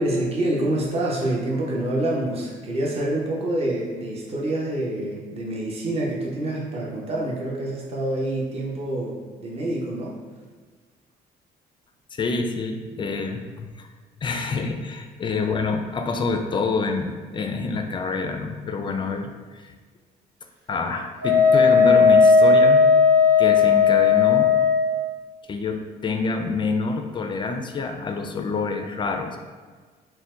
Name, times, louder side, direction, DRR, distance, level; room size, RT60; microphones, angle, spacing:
voice 1, 0.0-10.2, right 1 dB, 35° right, -3 dB, 0.9 m, -26 dB
voice 2, 12.1-13.9 14.2-19.7 20.7-22.9 23.4-24.5 25.5-29.4, left 4 dB, 30° left, 5 dB, 0.4 m, -27 dB
Wind instrument woodwind instrument, 21.2-24.9, left 5 dB, 75° right, 0.7 m, -15 dB
4.3 x 2.2 x 3.7 m, 1.5 s
cardioid pair, 110°, 17 cm